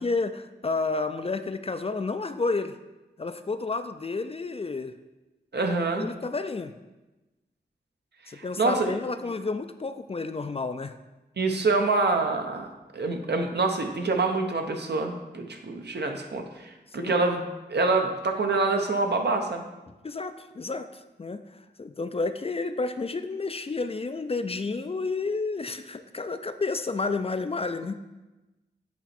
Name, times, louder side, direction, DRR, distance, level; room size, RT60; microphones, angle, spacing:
voice 1, 0.0-2.8 3.2-4.9 6.0-6.7 8.3-11.0 16.9-17.1 20.0-21.4 21.8-27.9, left 3 dB, 35° left, 10 dB, 0.4 m, -30 dB
voice 2, 5.5-6.1 8.3-8.9 11.4-17.4 17.7-19.7, right 3 dB, 65° right, 3 dB, 0.8 m, -26 dB
8.2 x 3.0 x 4.2 m, 1.1 s
cardioid pair, 40°, 18 cm